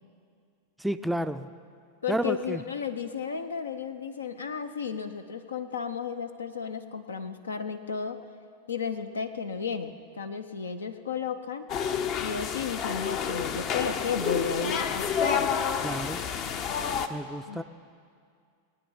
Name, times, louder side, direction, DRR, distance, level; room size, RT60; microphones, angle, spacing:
voice 1, 0.8-1.5 2.1-2.6 15.8-16.2 17.1-17.6, right 1 dB, 5° right, 10 dB, 0.4 m, -31 dB
voice 2, 2.0-8.2 8.7-11.7 12.2-15.6 17.5-17.6, left 6 dB, 70° left, 9 dB, 0.8 m, -33 dB
sound 1, 11.7-17.1, left 7 dB, 40° left, 0.8 m, -29 dB
21.0 x 9.4 x 5.5 m, 2.3 s
figure-of-eight pair, 90°, 0 cm